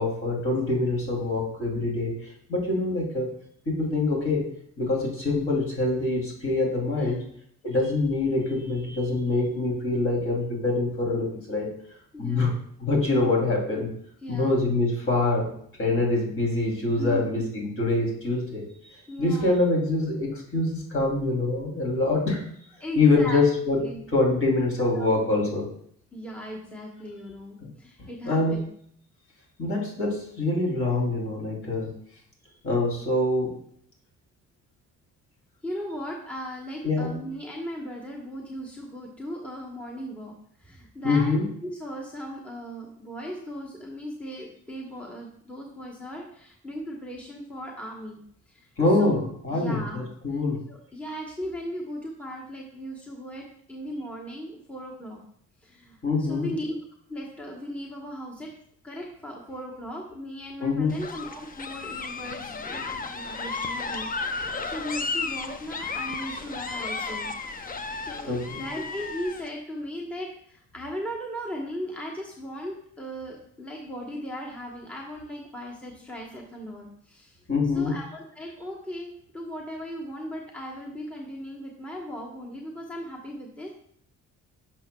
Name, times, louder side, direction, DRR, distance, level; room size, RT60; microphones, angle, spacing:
voice 1, 0.0-2.1 2.5-3.3 3.7-4.4 4.8-7.2 7.6-11.7 12.2-12.5 12.8-13.9 14.3-15.5 15.8-18.6 19.2-22.4 23.0-23.8 24.1-25.6 27.6-27.7 28.2-28.6 29.6-31.9 32.6-33.5 36.8-37.2 41.0-41.5 48.8-49.2 49.4-50.6 56.0-56.5 60.6-61.0 68.3-68.6 77.5-78.0, left 2 dB, 45° left, -2 dB, 2.9 m, -25 dB
voice 2, 6.9-7.3 12.1-12.5 14.2-14.6 17.0-17.5 19.1-19.5 22.8-23.4 23.8-24.0 24.8-25.1 26.1-28.7 35.6-40.3 40.6-48.2 48.5-48.7 49.0-50.1 50.3-50.4 50.7-55.2 55.6-56.8 57.1-58.5 58.8-67.8 68.0-77.4 77.7-83.7, equal, 5° left, -1 dB, 1.1 m, -37 dB
sound 1, 60.9-69.5, left 4 dB, 30° left, 0.5 m, -33 dB
10.5 x 6.0 x 2.3 m, 0.65 s
cardioid pair, 90°, 30 cm